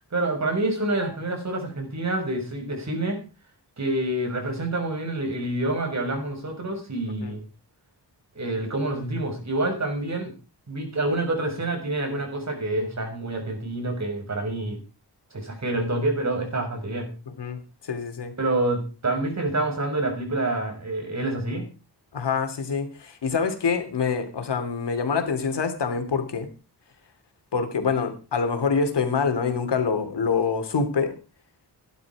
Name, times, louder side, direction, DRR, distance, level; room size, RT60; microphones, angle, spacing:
voice 1, 0.1-3.2 3.8-7.4 8.3-10.3 10.7-14.8 15.3-17.1 18.4-21.6, right 2 dB, 40° right, 4 dB, 6.6 m, -27 dB
voice 2, 17.3-17.6 17.9-18.3 22.1-26.5 27.5-31.1, left 5 dB, 85° left, 7 dB, 3.1 m, -25 dB
17.5 x 11.5 x 4.9 m, 0.33 s
wide cardioid pair, 140°, 41 cm